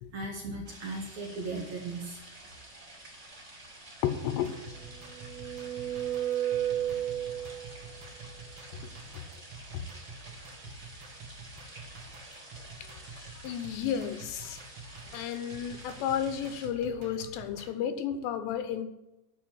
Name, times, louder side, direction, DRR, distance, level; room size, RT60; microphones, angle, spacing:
voice 1, 0.1-2.2, right 3 dB, 50° right, -1 dB, 2.6 m, -37 dB
sound 1, 0.6-16.7, right 1 dB, 15° right, 3.6 m, -50 dB
voice 2, 4.0-4.6 9.7-9.8 12.8-13.0 13.4-14.6 15.1-18.8, left 9 dB, 80° left, 10 dB, 3.0 m, -32 dB
sound 2, 4.3-17.7, right 3 dB, 65° right, 1.2 m, -48 dB
sound 3, 4.8-7.9, right 11 dB, 85° right, 2.9 m, -32 dB
11.5 x 5.6 x 7.8 m, 0.95 s
omnidirectional pair, 5.2 m